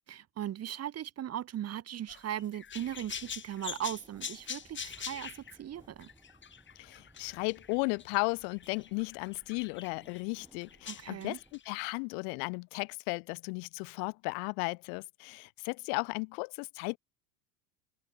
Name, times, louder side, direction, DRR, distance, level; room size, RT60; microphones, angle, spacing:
voice 1, 0.1-6.1 10.8-11.4, right 11 dB, 30° right, 1.0 m, -38 dB
sound 1, 2.1-8.2 8.5-10.2 10.6-11.8, left 7 dB, 20° left, 1.4 m, -44 dB
sound 2, 3.0-11.6, right 2 dB, 5° right, 5.7 m, -63 dB
voice 2, 6.8-11.4 11.7-17.0, left 40 dB or more, 70° left, 2.1 m, -35 dB
open air
supercardioid pair, 110°, 50 cm